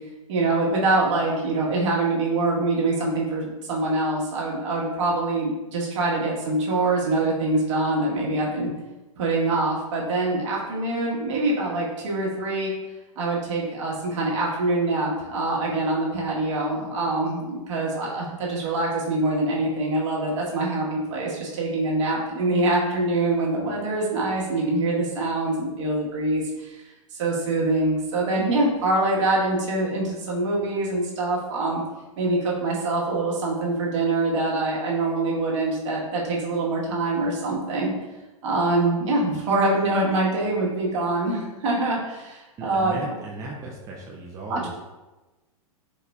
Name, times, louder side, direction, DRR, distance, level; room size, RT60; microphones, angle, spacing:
voice 1, 0.3-8.7 9.2-12.7 13.2-26.8 27.1-31.8 32.2-37.9 38.4-43.1 44.5-44.8, right 2 dB, 55° right, -4 dB, 1.2 m, -24 dB
voice 2, 42.6-44.8, right 2 dB, 20° right, -2 dB, 0.5 m, -36 dB
4.2 x 3.8 x 2.3 m, 1.1 s
figure-of-eight pair, 100°, 18 cm